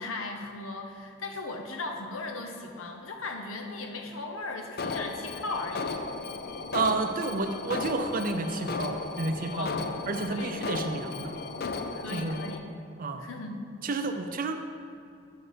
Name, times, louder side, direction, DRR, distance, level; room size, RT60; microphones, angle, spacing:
voice 1, 0.0-6.0 9.4-9.9 10.3-10.8 11.9-12.7 13.2-13.6, left 2 dB, 70° left, 3 dB, 0.8 m, -37 dB
Alarm, 4.8-12.6, left 3 dB, 50° left, 0.5 m, -35 dB
voice 2, 6.7-11.3 12.1-12.4 13.0-13.3 13.8-14.5, right 3 dB, 45° right, 7 dB, 0.5 m, -31 dB
8.8 x 4.4 x 5.1 m, 2.4 s
head